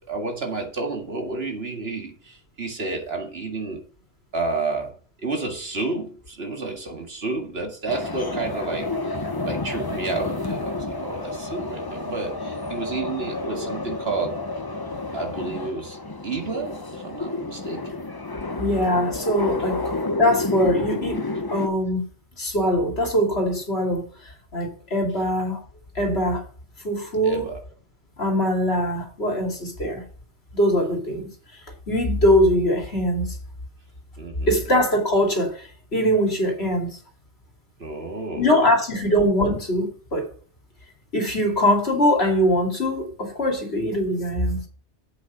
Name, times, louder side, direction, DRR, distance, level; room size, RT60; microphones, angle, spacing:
voice 1, 0.1-3.8 4.3-4.9 5.2-8.9 9.4-14.4 15.1-18.0 27.2-27.6 34.2-34.6 37.8-38.5, right 3 dB, 60° right, 2.3 m, -30 dB
sound 1, 7.9-21.7, left 2 dB, 20° left, 0.8 m, -30 dB
voice 2, 18.6-21.2 21.5-22.0 22.4-24.1 24.5-25.6 25.9-26.4 26.8-27.5 28.2-30.0 30.5-31.3 31.9-33.4 34.5-37.0 38.4-40.3 41.1-44.6, equal, 65° left, 2.9 m, -22 dB
8.0 x 6.4 x 5.7 m
omnidirectional pair, 1.2 m